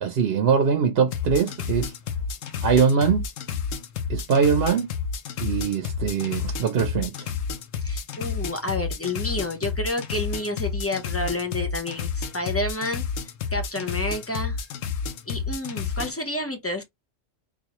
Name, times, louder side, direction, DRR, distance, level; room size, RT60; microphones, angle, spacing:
voice 1, 0.0-1.9 2.6-3.2 4.1-4.9 5.4-7.1, right 6 dB, 55° right, 0.8 m, -22 dB
sound 1, 1.1-16.1, left 6 dB, 75° left, 1.0 m, -30 dB
voice 2, 7.8-13.0 13.5-14.6 15.3-16.8, left 2 dB, 20° left, 0.4 m, -29 dB
4.0 x 2.5 x 2.9 m
omnidirectional pair, 1.3 m